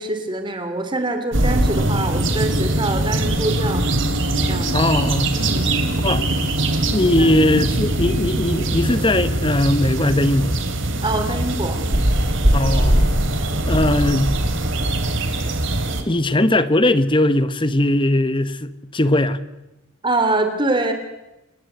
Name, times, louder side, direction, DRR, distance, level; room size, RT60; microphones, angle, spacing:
voice 1, 0.0-3.8 4.5-4.7 5.3-5.7 7.2-7.3 11.0-11.8 20.0-20.9, right 2 dB, 20° right, 3.2 m, -24 dB
sound 1, 1.3-16.0, right 1 dB, 60° right, 3.0 m, -21 dB
voice 2, 4.7-5.3 6.0-6.2 6.9-10.6 12.5-13.2 13.7-14.4 16.1-19.4, left 1 dB, 25° left, 1.1 m, -19 dB
29.0 x 18.5 x 8.2 m
head